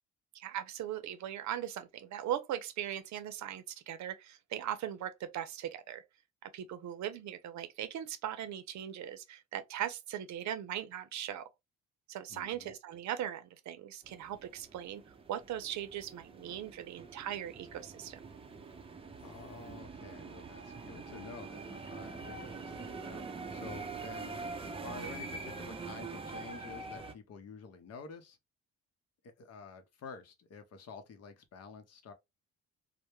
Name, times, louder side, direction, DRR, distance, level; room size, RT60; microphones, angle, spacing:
voice 1, 0.3-6.0 6.4-11.5 12.1-15.0 15.3-18.2, right 11 dB, 70° right, 0.6 m, -39 dB
voice 2, 12.3-12.7 19.2-23.2 23.5-24.4 24.8-28.4 29.2-32.1, left 4 dB, 55° left, 0.7 m, -49 dB
sound 1, 14.0-27.1, right 3 dB, 20° right, 0.4 m, -44 dB
2.1 x 2.1 x 3.0 m
cardioid pair, 90°, 30 cm